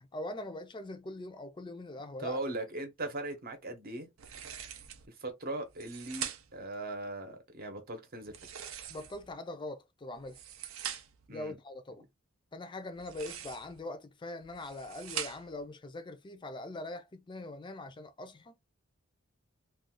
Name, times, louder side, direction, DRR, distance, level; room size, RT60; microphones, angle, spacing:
voice 1, 0.0-2.4 8.9-10.4 11.3-12.1 12.5-18.5, left 2 dB, 25° left, 0.4 m, -42 dB
voice 2, 2.2-4.1 5.1-8.3 11.3-11.6, right 2 dB, 45° right, 0.8 m, -39 dB
sound 1, 4.2-5.1 5.7-6.7 8.2-9.3 10.1-11.3 12.9-13.8 14.4-15.6, right 9 dB, 80° right, 0.5 m, -43 dB
2.5 x 2.3 x 3.6 m
head